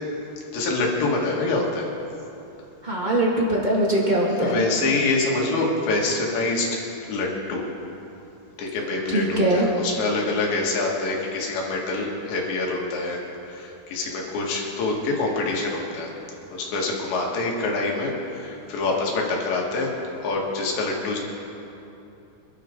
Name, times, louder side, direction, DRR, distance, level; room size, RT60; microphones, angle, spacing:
voice 1, 0.5-1.9 4.3-7.6 8.6-16.1 16.5-19.9 20.2-21.2, left 3 dB, 90° left, -1 dB, 4.3 m, -26 dB
voice 2, 2.8-4.6 9.1-9.7, right 1 dB, 30° right, -4 dB, 0.8 m, -21 dB
27.0 x 12.0 x 3.8 m, 2.9 s
omnidirectional pair, 4.9 m